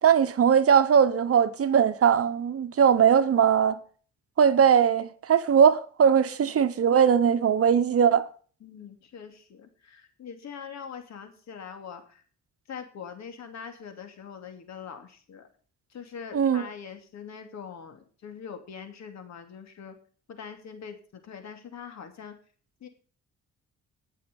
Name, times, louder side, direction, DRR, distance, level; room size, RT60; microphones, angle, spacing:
voice 1, 0.0-3.8 4.4-8.3 16.3-16.6, right 7 dB, 50° right, 1.1 m, -20 dB
voice 2, 8.6-12.2 12.7-15.5 15.9-20.0 20.3-22.3 22.8-22.9, left 7 dB, 60° left, 2.8 m, -43 dB
18.5 x 6.6 x 5.4 m
cardioid pair, 90°, 30 cm